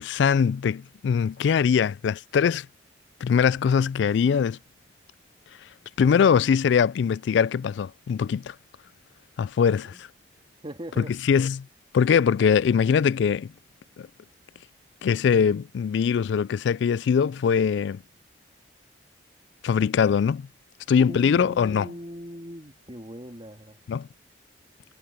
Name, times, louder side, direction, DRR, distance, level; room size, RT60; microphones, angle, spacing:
voice 1, 0.0-2.7 3.2-4.6 6.0-8.6 9.4-9.9 11.0-11.7 11.9-13.5 14.0-14.1 15.0-18.0 19.6-20.5 20.9-21.9 23.9-24.1, left 7 dB, 65° left, 0.3 m, -22 dB
voice 2, 9.6-10.0 10.6-11.1 21.0-23.8, equal, 30° right, 2.7 m, -40 dB
head